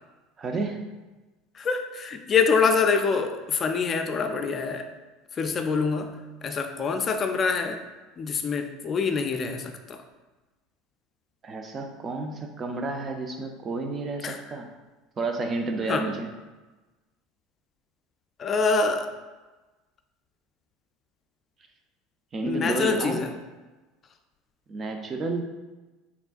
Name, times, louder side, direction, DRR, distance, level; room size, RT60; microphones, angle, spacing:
voice 1, 0.4-0.8 11.4-14.7 15.2-16.3 22.3-23.3 24.7-25.4, right 3 dB, 35° right, 4 dB, 0.6 m, -31 dB
voice 2, 1.5-4.9 5.3-7.8 8.2-10.0 14.2-14.4 15.9-16.1 18.4-19.1 22.4-23.3, left 5 dB, 35° left, 6 dB, 0.4 m, -25 dB
4.4 x 3.5 x 2.5 m, 1.2 s
hypercardioid pair, 85°, 0 cm